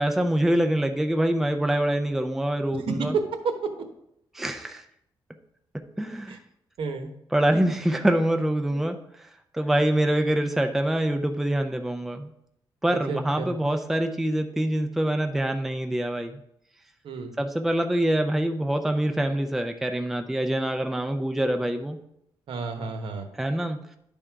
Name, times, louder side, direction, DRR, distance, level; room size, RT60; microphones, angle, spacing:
voice 1, 0.0-3.2 4.3-4.8 6.0-6.4 7.3-9.0 9.5-12.3 12.8-16.4 17.4-22.0 23.4-23.8, right 1 dB, 5° right, 5 dB, 0.4 m, -25 dB
voice 2, 2.7-3.5 6.3-6.4 6.8-7.1 8.7-8.9 12.9-13.5 17.0-17.3 22.5-23.3, right 4 dB, 70° right, 6 dB, 1.0 m, -30 dB
11.0 x 3.7 x 4.5 m, 0.77 s
wide cardioid pair, 180°, 9 cm